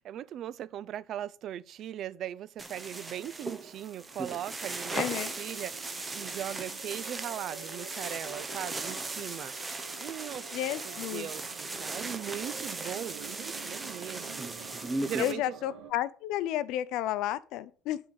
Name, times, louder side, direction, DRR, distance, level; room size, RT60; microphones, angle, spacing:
voice 1, 0.0-10.5 10.8-15.6, right 11 dB, 45° right, 0.5 m, -40 dB
sound 1, 2.6-15.3, right 3 dB, 15° right, 1.0 m, -38 dB
sound 2, 2.9-15.9, right 7 dB, 80° right, 2.5 m, -49 dB
voice 2, 4.9-5.4 10.5-11.3 15.2-18.0, left 13 dB, 65° left, 0.6 m, -32 dB
10.5 x 4.9 x 7.1 m
cardioid pair, 155°, 0 cm